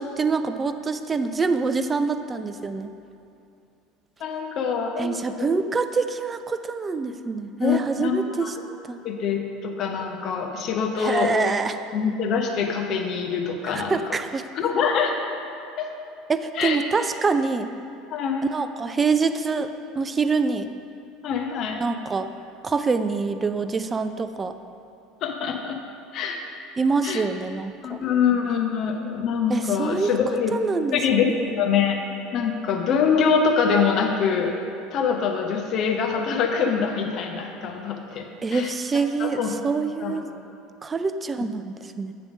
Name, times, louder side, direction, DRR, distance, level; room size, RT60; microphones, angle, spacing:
voice 1, 0.0-2.9 5.0-8.5 8.8-9.0 11.0-11.8 13.6-14.4 16.3-17.7 18.5-20.7 21.8-22.3 22.6-24.6 26.8-28.0 29.5-30.2 30.5-31.5 38.4-40.3 40.8-42.1, right 4 dB, 25° right, 10 dB, 0.4 m, -25 dB
voice 2, 4.2-5.1 5.4-5.5 7.6-8.1 8.4-8.5 9.0-11.3 11.9-13.9 14.5-15.1 15.8-15.9 16.6-16.8 18.1-18.5 21.2-21.8 25.2-25.8 26.1-26.4 27.0-27.2 27.8-30.5 30.9-31.2 31.5-32.0 32.3-34.6 34.9-38.7 39.2-39.5 40.0-40.2, left 6 dB, 50° left, 3 dB, 0.8 m, -24 dB
7.9 x 3.4 x 6.0 m, 2.6 s
figure-of-eight pair, 70°, 0 cm